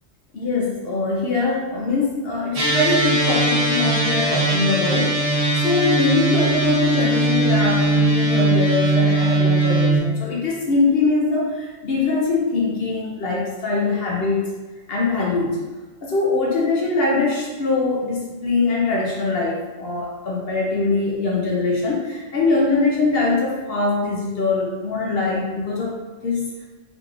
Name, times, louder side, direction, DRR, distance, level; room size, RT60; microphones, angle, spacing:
voice 1, 0.3-5.2 5.6-14.5 14.9-15.5 16.0-25.9 26.2-26.4, left 3 dB, 55° left, -3 dB, 0.7 m, -22 dB
sound 1, 2.6-10.0, right 1 dB, 45° right, 0.5 m, -19 dB
3.7 x 3.1 x 2.4 m, 1.3 s
omnidirectional pair, 1.4 m